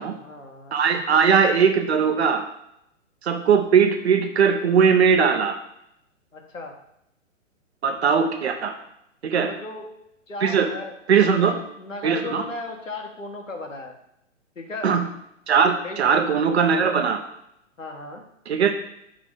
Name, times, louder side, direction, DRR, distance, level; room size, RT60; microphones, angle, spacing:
voice 1, 0.0-0.8 6.3-6.7 9.3-9.9 10.3-13.9 14.5-15.0 15.8-16.0 17.8-18.2, left 2 dB, 80° left, 2 dB, 1.5 m, -36 dB
voice 2, 0.7-2.4 3.2-5.6 7.8-8.7 9.2-9.5 10.4-10.7 11.1-11.6 12.0-12.4 14.8-15.1 15.5-17.2 18.5-18.7, right 6 dB, 55° right, 6 dB, 1.0 m, -19 dB
5.9 x 3.6 x 5.8 m, 0.79 s
figure-of-eight pair, 120°, 39 cm